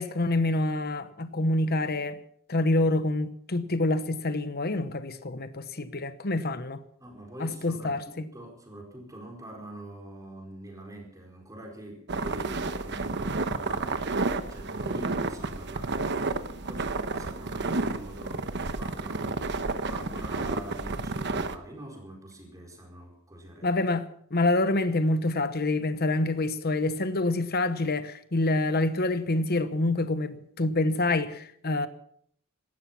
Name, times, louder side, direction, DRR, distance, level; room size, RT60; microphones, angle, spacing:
voice 1, 0.0-2.2 2.5-6.8 7.4-8.3 23.6-31.9, left 2 dB, 45° left, 1.1 m, -27 dB
voice 2, 7.0-14.0 14.5-16.1 16.6-19.4 19.8-23.8, right 1 dB, 15° right, 4.7 m, -44 dB
sound 1, 12.1-21.6, right 3 dB, 55° right, 1.1 m, -31 dB
17.5 x 13.5 x 5.9 m
head